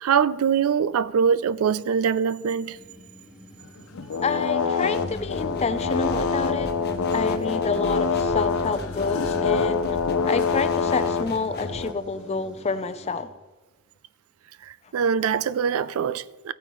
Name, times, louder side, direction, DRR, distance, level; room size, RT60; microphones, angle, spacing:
voice 1, 0.0-2.8 14.6-16.5, right 7 dB, 80° right, 0.4 m, -23 dB
sound 1, 2.7-13.2, left 1 dB, 5° right, 1.3 m, -47 dB
sound 2, 3.8-11.9, left 5 dB, 80° left, 0.6 m, -25 dB
voice 2, 4.2-6.7 7.1-10.0 10.3-13.3, left 4 dB, 30° left, 0.5 m, -28 dB
sound 3, 4.9-11.8, left 2 dB, 50° left, 1.0 m, -36 dB
15.5 x 9.0 x 3.1 m
head